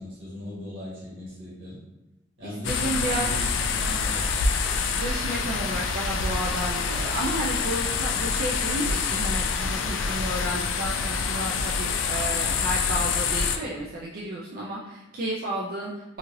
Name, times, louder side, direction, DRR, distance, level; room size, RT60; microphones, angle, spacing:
voice 1, 0.0-1.8 2.4-4.2 7.0-7.3, equal, 85° right, -8 dB, 1.5 m, -38 dB
voice 2, 2.4-3.3 4.9-16.2, right 1 dB, 50° right, -5 dB, 0.4 m, -32 dB
sound 1, 2.6-13.6, left 5 dB, 85° left, 0.3 m, -26 dB
2.8 x 2.5 x 3.0 m, 1.0 s
head